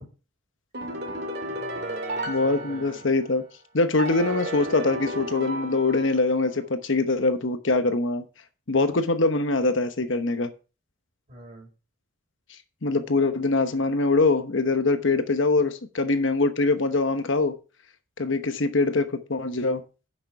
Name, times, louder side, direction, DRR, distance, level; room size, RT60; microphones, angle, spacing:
sound 1, 0.7-3.4 4.0-6.5, right 1 dB, 50° right, 2.1 m, -33 dB
voice 1, 1.5-3.0 11.3-11.7, right 1 dB, 30° right, 5.9 m, -45 dB
voice 2, 2.3-3.4 3.7-8.2 8.7-10.5 12.8-17.5 18.2-19.8, left 3 dB, 70° left, 1.0 m, -23 dB
10.0 x 6.6 x 4.8 m
head